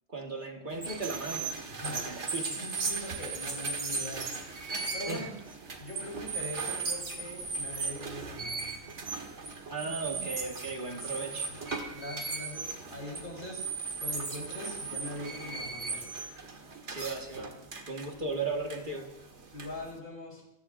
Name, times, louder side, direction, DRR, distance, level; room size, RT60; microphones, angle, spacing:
voice 1, 0.1-1.6 1.8-2.7 5.1-5.3 9.7-11.5 16.9-17.6 17.9-19.1, right 3 dB, 40° right, 3 dB, 1.7 m, -36 dB
sound 1, 0.7-20.0, right 4 dB, 60° right, 1.9 m, -37 dB
voice 2, 1.7-2.1 2.6-4.3 4.9-5.3 5.8-8.7 11.1-11.6 11.9-13.6 14.0-16.1 19.5-20.4, left 1 dB, 40° left, -2 dB, 4.2 m, -42 dB
25.5 x 16.0 x 2.6 m, 0.84 s
omnidirectional pair, 1.3 m